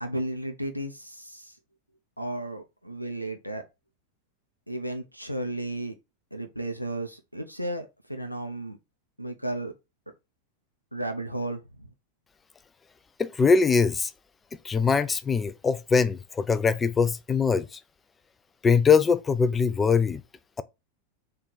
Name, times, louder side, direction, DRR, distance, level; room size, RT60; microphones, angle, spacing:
voice 1, 0.0-1.5 2.2-3.6 4.7-5.9 6.3-8.8 9.2-9.7 10.9-11.9, right 1 dB, 90° left, 0.5 m, -34 dB
voice 2, 13.2-14.1 14.6-17.8 18.6-20.2, left 5 dB, 15° left, 0.3 m, -22 dB
3.3 x 2.4 x 3.7 m
figure-of-eight pair, 90°, 0 cm